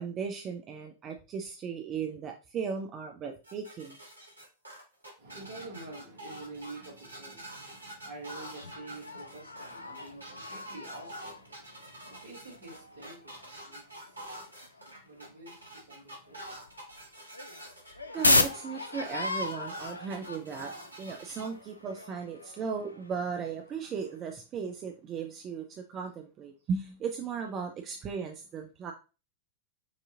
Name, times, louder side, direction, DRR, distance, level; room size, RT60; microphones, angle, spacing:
voice 1, 0.0-4.0 18.1-28.9, right 6 dB, 30° right, 0.5 m, -36 dB
sound 1, 3.4-21.5, right 1 dB, 85° right, 1.4 m, -46 dB
voice 2, 5.2-16.8, right 2 dB, 60° right, 1.8 m, -48 dB
sound 2, 8.6-15.3 15.7-15.8 16.1-24.3, left 2 dB, 80° left, 0.4 m, -35 dB
5.9 x 2.8 x 2.6 m
figure-of-eight pair, 90°, 0 cm